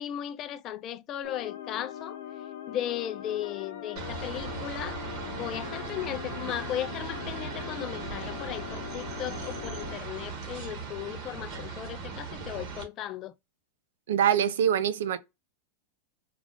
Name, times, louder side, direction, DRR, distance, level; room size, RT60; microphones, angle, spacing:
voice 1, 0.0-2.2 2.7-5.0 5.3-13.3, left 11 dB, 30° left, 0.3 m, -36 dB
sound 1, 1.2-10.0, left 10 dB, 70° left, 0.8 m, -41 dB
sound 2, 4.0-12.8, right 4 dB, 45° right, 1.1 m, -38 dB
voice 2, 14.1-15.2, right 9 dB, 90° right, 0.5 m, -24 dB
2.5 x 2.3 x 3.4 m
supercardioid pair, 155°, 0 cm